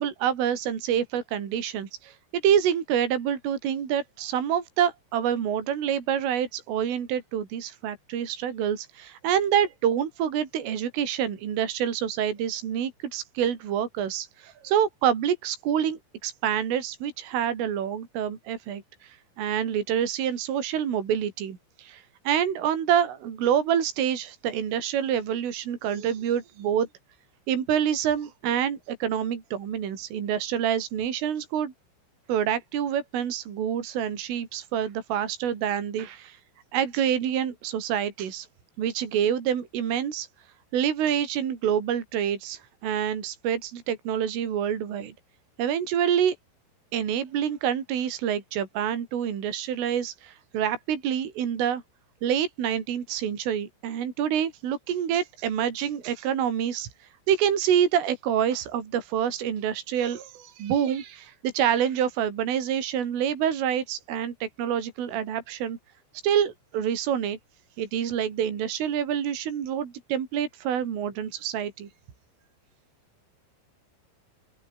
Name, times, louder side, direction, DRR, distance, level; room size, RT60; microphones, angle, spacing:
voice 1, 0.0-26.9 27.5-31.7 32.3-36.4 36.7-38.5 38.8-40.3 40.7-45.1 45.6-46.4 46.9-51.8 52.2-56.9 57.3-65.8 66.2-67.4 67.8-71.9, right 9 dB, 70° right, 6.0 m, -27 dB
open air
omnidirectional pair, 5.9 m